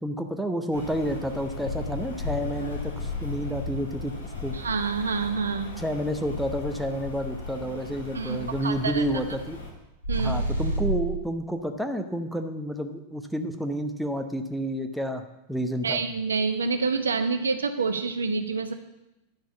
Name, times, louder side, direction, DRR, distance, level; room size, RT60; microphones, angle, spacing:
voice 1, 0.0-4.1 4.4-4.5 5.8-9.6 10.2-15.2 15.5-16.0, equal, ahead, 6 dB, 0.9 m, -30 dB
Rain, 0.7-9.7, left 3 dB, 75° left, 2.4 m, -36 dB
voice 2, 4.5-5.7 8.1-9.0 10.1-10.4 15.8-18.7, right 4 dB, 70° right, 8 dB, 0.8 m, -27 dB
sound 1, 10.0-11.3, right 2 dB, 90° right, 1.8 m, -27 dB
10.5 x 6.3 x 7.0 m, 0.95 s
figure-of-eight pair, 90°, 0 cm